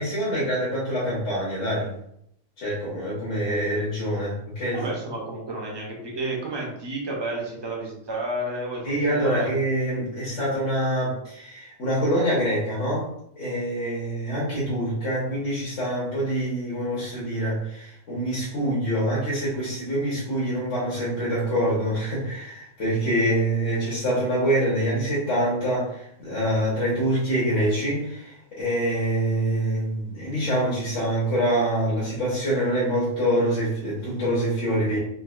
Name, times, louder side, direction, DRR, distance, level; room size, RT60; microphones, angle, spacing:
voice 1, 0.0-1.9 2.6-4.8 8.8-13.1 13.4-35.0, right 1 dB, 60° left, -8 dB, 1.4 m, -25 dB
voice 2, 4.7-8.8 9.1-9.5, right 1 dB, 25° right, -2 dB, 0.6 m, -31 dB
4.0 x 2.5 x 2.4 m, 0.73 s
omnidirectional pair, 1.4 m